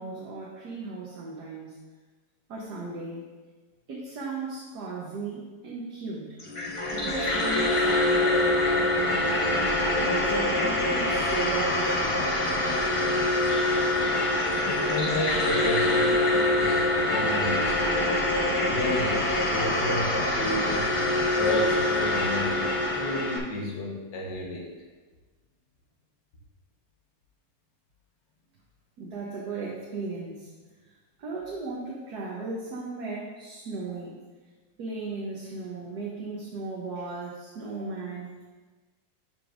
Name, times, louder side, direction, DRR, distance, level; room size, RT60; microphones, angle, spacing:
voice 1, 0.0-1.8 2.5-3.2 3.9-6.4 6.9-9.5 10.0-12.3 29.0-30.5 30.8-34.2 34.8-38.4, right 3 dB, 65° right, -4 dB, 1.5 m, -36 dB
sound 1, 6.4-23.4, left 1 dB, 60° left, 0.3 m, -25 dB
voice 2, 14.7-18.1 18.7-21.0 21.3-24.7, left 1 dB, 80° left, -1 dB, 1.8 m, -32 dB
11.0 x 5.2 x 2.5 m, 1.3 s
omnidirectional pair, 1.9 m